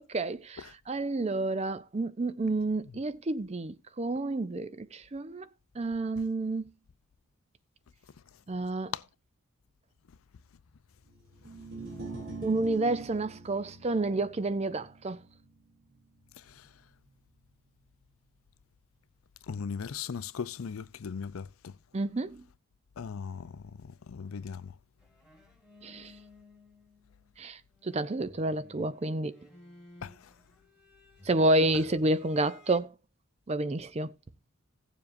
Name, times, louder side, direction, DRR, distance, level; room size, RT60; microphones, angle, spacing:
voice 1, 0.0-5.5 5.8-6.7 8.5-8.9 12.4-15.2 21.9-22.4 25.8-26.1 27.4-29.4 31.2-32.9 33.5-34.1, right 2 dB, 30° right, 0.5 m, -30 dB
sound 1, 11.3-17.7, right 4 dB, 65° right, 2.8 m, -43 dB
voice 2, 19.5-21.5 23.0-23.5 24.1-24.6 30.0-30.1, left 6 dB, 75° left, 0.5 m, -37 dB
sound 2, 25.0-27.5 27.8-32.8, left 2 dB, 5° right, 1.8 m, -56 dB
16.5 x 7.2 x 2.6 m
head